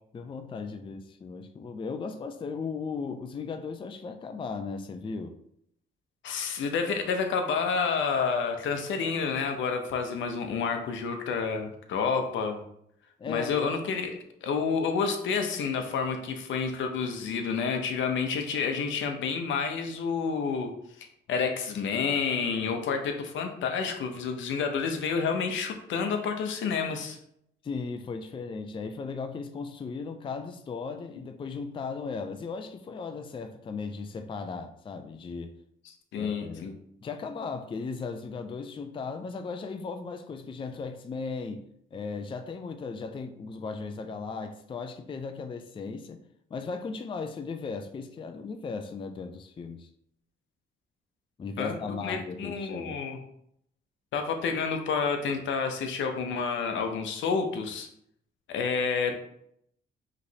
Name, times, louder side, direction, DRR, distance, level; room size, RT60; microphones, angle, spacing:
voice 1, 0.1-5.4 13.2-13.6 27.6-35.5 36.2-36.7 37.0-41.6 41.9-46.2 46.5-49.9 51.4-53.0, left 4 dB, 25° left, 7 dB, 0.4 m, -36 dB
voice 2, 6.2-12.6 13.3-27.2 36.1-36.8 51.6-51.8 52.0-53.2 54.1-57.9 58.5-59.1, left 5 dB, 75° left, 5 dB, 0.7 m, -29 dB
5.0 x 3.1 x 2.8 m, 0.72 s
cardioid pair, 90°, 20 cm